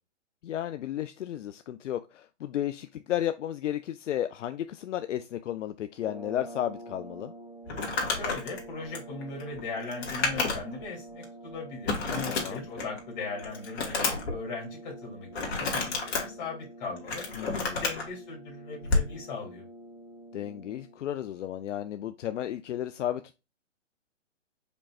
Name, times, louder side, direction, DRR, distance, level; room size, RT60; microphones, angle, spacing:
voice 1, 0.4-7.3 12.3-12.7 17.3-17.8 20.3-23.3, left 11 dB, 75° left, 0.5 m, -33 dB
sound 1, 5.9-21.1, right 2 dB, 55° right, 3.0 m, -47 dB
Crumpling crinkling, 7.7-10.8 11.2-11.3 11.9-13.0 13.4-14.3 15.3-16.2 16.8-18.0 18.8-19.1, left 3 dB, 55° left, 2.1 m, -30 dB
voice 2, 8.1-19.6, left 3 dB, 40° left, 3.0 m, -39 dB
5.1 x 4.4 x 2.4 m
hypercardioid pair, 150°, 37 cm